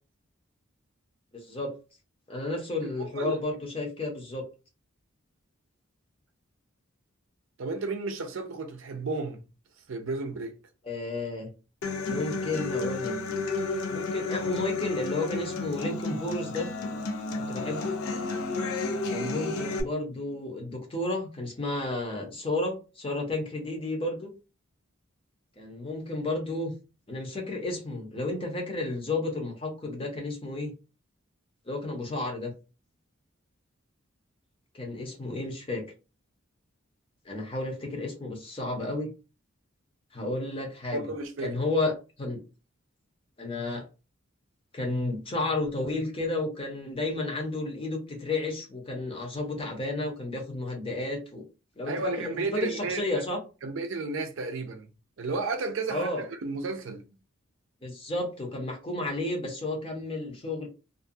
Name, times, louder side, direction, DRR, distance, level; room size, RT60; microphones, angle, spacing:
voice 1, 1.3-1.7 2.3-4.4 10.8-11.5 12.1-13.2 13.9-16.7 17.5-18.0 19.1-24.3 25.6-26.7 27.1-30.7 31.7-32.5 34.7-35.8 37.2-39.1 40.1-41.0 41.4-42.4 43.4-43.8 44.7-51.4 51.8-53.4 55.9-56.3 57.8-60.7, left 2 dB, 25° left, 0.7 m, -32 dB
voice 2, 3.0-3.4 7.6-9.5 9.9-10.5 40.9-41.6 51.8-53.0 53.6-54.9 55.2-57.0, right 3 dB, 65° right, 0.5 m, -32 dB
Human voice / Acoustic guitar, 11.8-19.8, left 3 dB, 85° left, 0.5 m, -32 dB
2.5 x 2.2 x 2.6 m
head